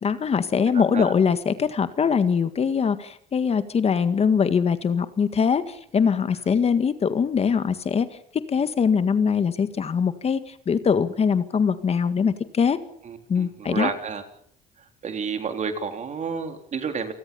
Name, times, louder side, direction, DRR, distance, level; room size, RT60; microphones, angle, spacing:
voice 1, 0.0-8.1 8.5-12.8 13.3-13.9, left 6 dB, 35° left, 11 dB, 1.8 m, -22 dB
voice 2, 0.6-1.1 13.0-14.2 15.0-17.1, right 6 dB, 45° right, 7 dB, 3.6 m, -30 dB
28.5 x 19.5 x 7.0 m, 0.66 s
cardioid pair, 110°, 17 cm